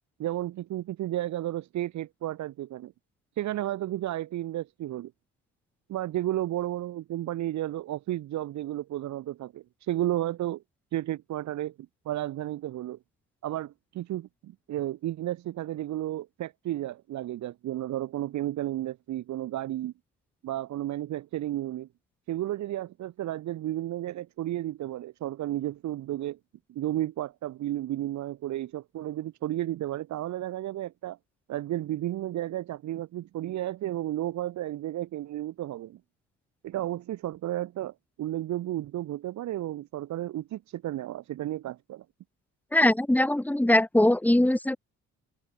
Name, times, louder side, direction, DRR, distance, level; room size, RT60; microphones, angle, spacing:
voice 1, 0.2-2.9 3.3-5.1 5.9-10.6 10.9-11.7 12.0-13.0 13.4-19.9 20.4-21.9 22.3-26.4 26.7-31.2 31.5-36.0 36.6-42.0, right 14 dB, 70° right, 0.9 m, -32 dB
voice 2, 42.7-44.8, left 1 dB, 5° left, 1.2 m, -21 dB
cardioid pair, 90°, 30 cm